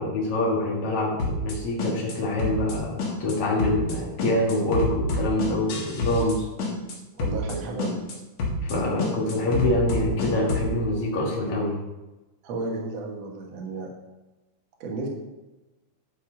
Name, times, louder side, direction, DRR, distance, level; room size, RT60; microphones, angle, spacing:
voice 1, 0.0-6.4 8.6-11.7, left 1 dB, 80° left, -3 dB, 1.3 m, -25 dB
sound 1, 1.2-1.5 1.8-2.1 2.4-2.7 3.0-3.3 3.6-3.9 4.2-6.3 6.6-6.9 7.2-7.5 7.8-8.1 8.4-8.7 9.0-10.7, left 2 dB, 55° left, 3.0 m, -27 dB
voice 2, 6.5-6.8 7.2-8.0 12.4-13.9 14.8-15.1, right 3 dB, 70° right, -1 dB, 1.5 m, -33 dB
11.0 x 5.0 x 5.1 m, 1.1 s
omnidirectional pair, 5.5 m